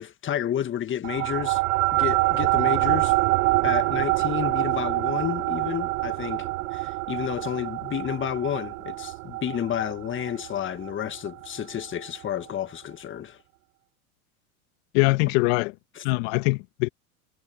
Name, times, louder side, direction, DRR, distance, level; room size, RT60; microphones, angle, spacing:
voice 1, 0.0-1.6 1.9-3.1 3.6-13.4 16.0-16.1, left 10 dB, 25° left, 1.8 m, -31 dB
sound 1, 1.0-11.8, right 20 dB, 70° right, 0.9 m, -26 dB
voice 2, 14.9-15.7 16.0-16.9, left 24 dB, 55° left, 1.6 m, -22 dB
supercardioid pair, 115°, 44 cm